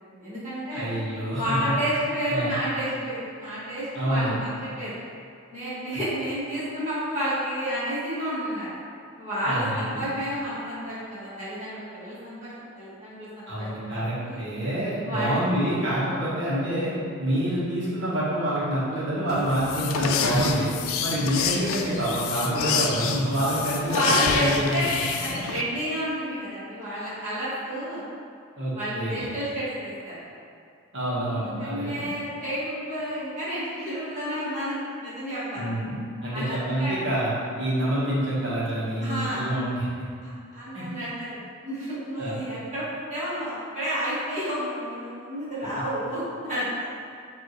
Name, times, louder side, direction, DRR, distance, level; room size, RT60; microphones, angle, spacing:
voice 1, 0.1-0.9 1.3-4.5 4.8-5.0 5.5-8.7 9.2-14.4 15.0-15.4 23.9-24.9 25.2-28.0 28.7-30.2 31.3-35.7 36.3-37.0 39.0-39.5 40.2-41.4 41.6-46.9, equal, 35° right, -11 dB, 1.5 m, -30 dB
voice 2, 0.7-1.7 2.3-2.5 3.9-4.4 9.4-10.0 13.5-16.9 17.2-20.7 21.0-24.8 28.6-29.2 30.9-32.0 35.5-36.0 36.2-37.3 37.6-39.9 40.7-40.8 42.2-42.4, right 1 dB, 65° right, -8 dB, 1.3 m, -27 dB
sound 1, 19.3-25.6, left 6 dB, 85° left, 0.3 m, -28 dB
5.2 x 2.8 x 3.1 m, 2.3 s
head